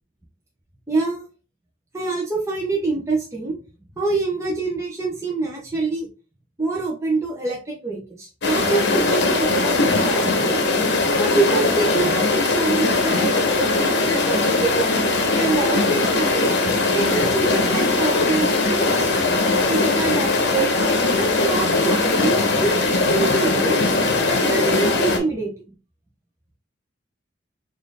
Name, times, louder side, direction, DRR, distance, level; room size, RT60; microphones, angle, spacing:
voice 1, 0.9-1.2 1.9-3.6 4.0-6.1 6.6-10.6 11.2-14.9 15.4-16.5 16.9-19.1 19.7-20.8 21.2-22.8 23.1-23.8 24.3-25.5, right 3 dB, 15° right, -3 dB, 0.6 m, -25 dB
sound 1, 8.4-25.2, left 3 dB, 55° left, 0.8 m, -20 dB
4.2 x 2.5 x 3.3 m, 0.35 s
head